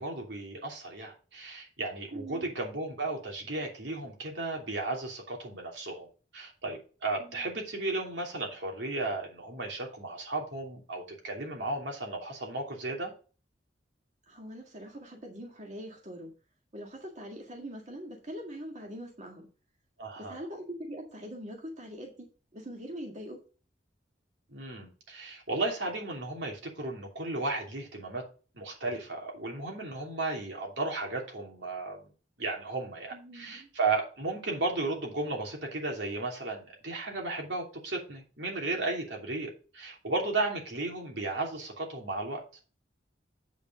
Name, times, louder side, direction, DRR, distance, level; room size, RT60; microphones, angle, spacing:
voice 1, 0.0-6.1 6.3-13.1 20.0-20.4 24.5-28.2 28.5-32.1 32.4-42.4, right 2 dB, 75° right, 0 dB, 3.0 m, -34 dB
voice 2, 2.1-2.5 7.2-7.5 14.3-16.3 16.7-19.5 20.2-23.4 33.1-33.7, equal, 40° right, 1 dB, 1.9 m, -43 dB
8.5 x 5.2 x 5.0 m, 0.36 s
head